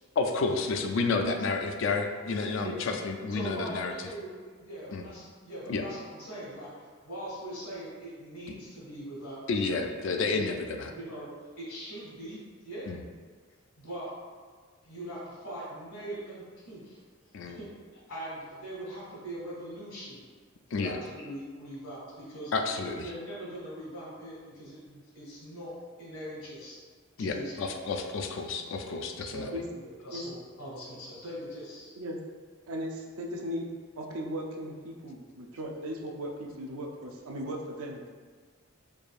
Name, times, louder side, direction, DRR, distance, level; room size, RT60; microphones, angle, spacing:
voice 1, 0.2-3.9 4.9-5.0 5.7-5.8 9.5-10.5 10.8-10.9 12.9-13.0 17.3-17.6 20.7-20.9 22.5-23.0 27.2-29.5, left 4 dB, 60° left, 4 dB, 0.3 m, -30 dB
voice 2, 3.3-4.3 4.6-9.4 10.3-10.6 10.9-11.3 11.6-12.9 13.8-14.1 14.8-17.0 17.6-17.7 17.9-20.2 20.7-22.5 22.8-25.7 26.0-26.8 27.2-27.6 29.3-32.0, right 1 dB, 80° left, -6 dB, 1.5 m, -41 dB
voice 3, 32.7-33.7 34.0-38.1, equal, 85° right, 0 dB, 0.5 m, -37 dB
4.7 x 2.5 x 2.4 m, 1.6 s
head